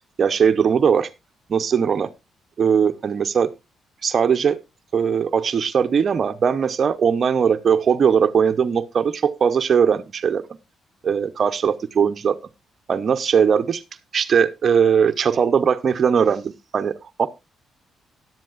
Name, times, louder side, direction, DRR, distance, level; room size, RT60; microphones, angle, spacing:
voice 1, 0.2-1.1 1.5-2.1 2.6-3.5 4.0-4.6 4.9-10.4 11.0-12.4 12.9-13.8 14.1-16.9 17.2-17.3, right 7 dB, 50° right, 10 dB, 0.7 m, -19 dB
13.5 x 11.0 x 2.4 m, 0.23 s
cardioid pair, 90°, 0 cm